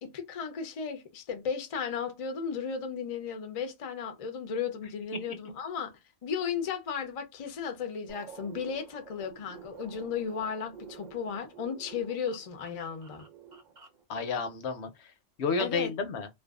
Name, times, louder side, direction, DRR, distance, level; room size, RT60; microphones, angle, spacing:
voice 1, 0.0-13.3 15.6-15.9, left 6 dB, 50° left, 0.4 m, -35 dB
sound 1, 8.1-14.0, right 6 dB, 45° right, 0.7 m, -50 dB
voice 2, 14.1-15.1 15.4-16.3, left 4 dB, 75° left, 0.8 m, -31 dB
2.5 x 2.2 x 2.3 m
omnidirectional pair, 1.2 m